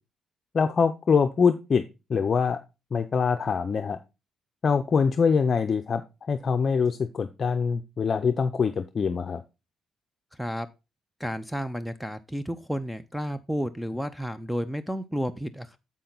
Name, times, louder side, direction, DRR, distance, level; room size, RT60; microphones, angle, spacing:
voice 1, 0.5-1.8 2.1-2.6 2.9-4.0 4.6-6.0 6.3-9.4, left 5 dB, 45° left, 8 dB, 0.5 m, -24 dB
voice 2, 11.2-15.8, equal, ahead, 13 dB, 0.5 m, -31 dB
7.4 x 5.7 x 3.9 m, 0.27 s
cardioid pair, 90°, 0 cm